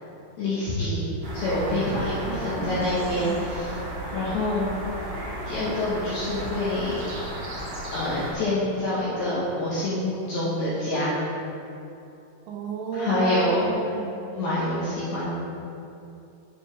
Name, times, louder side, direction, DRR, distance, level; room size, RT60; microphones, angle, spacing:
voice 1, 0.4-1.0 1.3-3.8 4.1-4.7 5.5-7.0 7.9-11.2 12.9-13.7 14.3-15.3, left 1 dB, 75° left, -10 dB, 2.3 m, -26 dB
sound 1, 1.2-8.3, right 1 dB, 65° right, 1.9 m, -34 dB
voice 2, 2.2-2.8 12.5-14.2, right 3 dB, 85° right, -1 dB, 2.9 m, -32 dB
7.8 x 6.8 x 3.3 m, 2.8 s
omnidirectional pair, 5.9 m